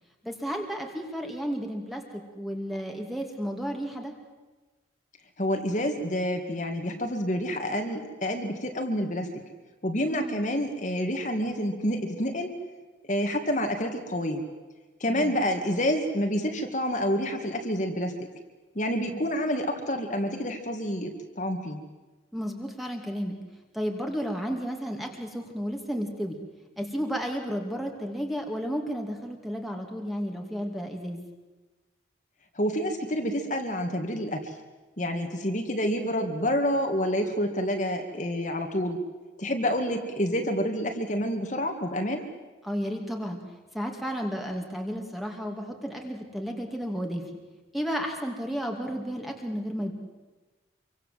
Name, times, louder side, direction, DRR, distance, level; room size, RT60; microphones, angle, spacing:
voice 1, 0.2-4.1 10.1-10.4 15.1-15.4 22.3-23.4 23.7-26.4 26.8-31.2 42.6-43.4 43.7-47.2 47.7-49.9, equal, ahead, 2 dB, 2.5 m, -32 dB
voice 2, 5.4-9.3 9.8-12.5 13.1-14.4 15.0-18.3 18.8-21.8 32.5-34.5 35.0-39.0 39.4-42.3, equal, 40° left, 4 dB, 2.2 m, -28 dB
26.5 x 24.0 x 7.7 m, 1.2 s
head